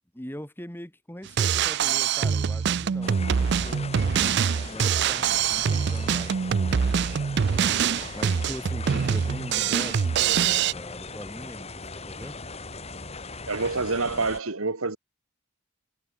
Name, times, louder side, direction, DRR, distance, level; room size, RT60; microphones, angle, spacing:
voice 1, 0.1-3.9 4.6-7.3 8.1-12.4, equal, 10° left, 2.2 m, -41 dB
Drum kit, 1.3-10.7, right 7 dB, 50° right, 0.4 m, -24 dB
sound 1, 3.0-14.4, left 3 dB, 30° left, 2.6 m, -39 dB
voice 2, 13.5-15.0, right 3 dB, 85° right, 1.9 m, -27 dB
head